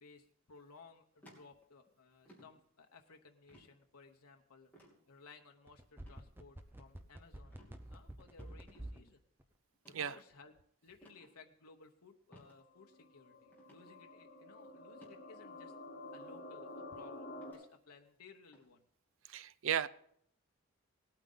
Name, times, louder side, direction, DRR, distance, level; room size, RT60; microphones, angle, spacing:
voice 1, 0.0-4.7 5.1-7.5 7.9-9.2 9.9-10.6 10.8-15.7 16.1-18.8, left 4 dB, 85° left, 3 dB, 1.0 m, -59 dB
sound 1, 1.2-1.9 2.2-2.5 3.5-3.7 4.7-5.0 6.0-6.2 6.7-7.1 7.5-7.7 8.4-8.8 9.7-10.0 11.0-11.3 12.3-12.5 12.9-13.0 13.5-13.9 14.9-15.1 16.2-16.3 17.4-17.6 18.5-18.7, equal, 10° left, 2.9 m, -61 dB
sound 2, 5.7-9.1 9.4-9.5, right 1 dB, 10° right, 0.7 m, -48 dB
sound 3, 12.4-17.5, left 2 dB, 50° left, 4.4 m, -50 dB
voice 2, 19.3-19.9, right 9 dB, 65° right, 16 dB, 0.5 m, -35 dB
18.5 x 8.9 x 3.9 m, 0.67 s
head